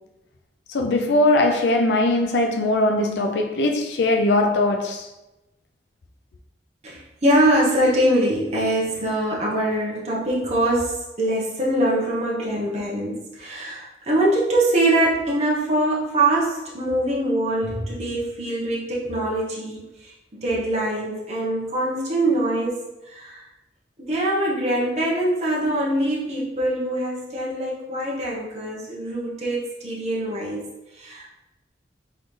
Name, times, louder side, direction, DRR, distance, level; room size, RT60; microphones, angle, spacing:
voice 1, 0.7-5.1, left 2 dB, 75° left, 0.5 m, -20 dB
voice 2, 6.8-23.4 24.0-30.6 30.9-31.3, right 1 dB, 40° right, 1.0 m, -23 dB
4.0 x 3.9 x 3.2 m
head